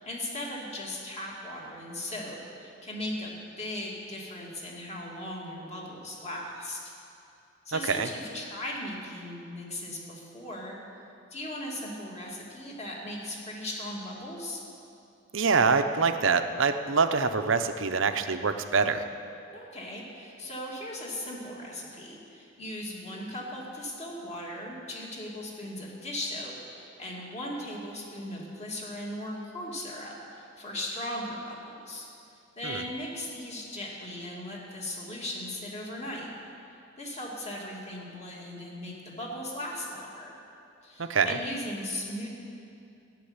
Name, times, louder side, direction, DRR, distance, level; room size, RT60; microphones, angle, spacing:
voice 1, 0.0-6.8 7.6-10.8 11.3-14.6 19.5-32.1 32.6-36.3 37.0-40.4 40.8-42.3, left 1 dB, 30° left, -3 dB, 2.4 m, -38 dB
voice 2, 7.7-8.1 15.3-19.0 32.6-32.8 41.0-41.4, right 4 dB, 60° right, 8 dB, 0.7 m, -25 dB
15.0 x 7.6 x 9.6 m, 2.6 s
head